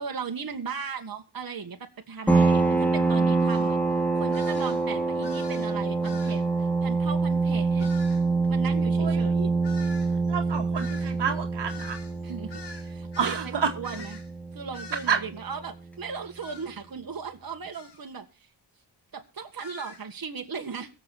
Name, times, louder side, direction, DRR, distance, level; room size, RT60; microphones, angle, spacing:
voice 1, 0.0-3.8 4.1-7.9 8.5-9.5 12.2-14.2 14.5-18.2 19.1-20.9, right 5 dB, 55° right, 1.9 m, -37 dB
sound 1, 2.3-15.5, right 3 dB, 5° left, 2.4 m, -26 dB
sound 2, 3.5-3.7 4.3-4.8 5.2-5.7 6.0-6.4 7.8-8.2 9.6-13.5 13.8-14.3 14.7-15.2 16.4-16.7 17.7-18.0 19.6-20.0, left 4 dB, 70° left, 2.7 m, -45 dB
voice 2, 10.3-12.0 13.2-13.7 15.1-15.2, right 6 dB, 75° right, 1.9 m, -28 dB
22.0 x 7.3 x 4.2 m
wide cardioid pair, 95°, 42 cm